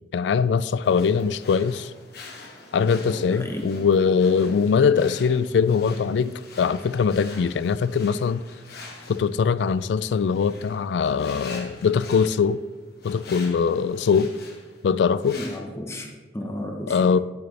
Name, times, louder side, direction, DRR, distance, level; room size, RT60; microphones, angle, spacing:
voice 1, 0.1-1.9 2.7-8.4 9.1-12.6 13.0-14.3 14.8-15.4 16.9-17.2, left 6 dB, 80° left, 16 dB, 0.3 m, -22 dB
sound 1, 0.8-15.6, left 3 dB, 60° left, 1.4 m, -45 dB
voice 2, 3.0-3.7 15.3-17.0, left 1 dB, 15° left, 1 dB, 1.0 m, -34 dB
9.5 x 7.9 x 3.3 m, 1.3 s
head